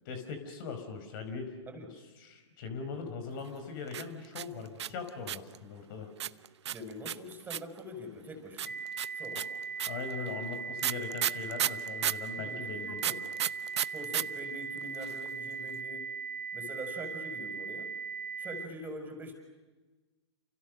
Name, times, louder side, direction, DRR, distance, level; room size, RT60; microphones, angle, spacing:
voice 1, 0.1-1.6 1.9-6.1 9.3-9.4 9.9-13.0, left 5 dB, 45° left, 8 dB, 5.2 m, -40 dB
sound 1, 3.9-5.6 6.2-7.8 8.6-12.3 13.0-14.2 14.5-14.6 14.8-15.3, right 10 dB, 65° right, 0.9 m, -32 dB
voice 2, 6.7-8.7 9.1-9.4 12.4-13.2 13.9-16.1 16.5-17.9 18.4-19.3, equal, 10° right, 5 dB, 6.2 m, -44 dB
sound 2, 8.7-18.7, right 5 dB, 5° left, 2.6 m, -39 dB
29.5 x 28.5 x 6.7 m, 1.2 s
hypercardioid pair, 130°, 15 cm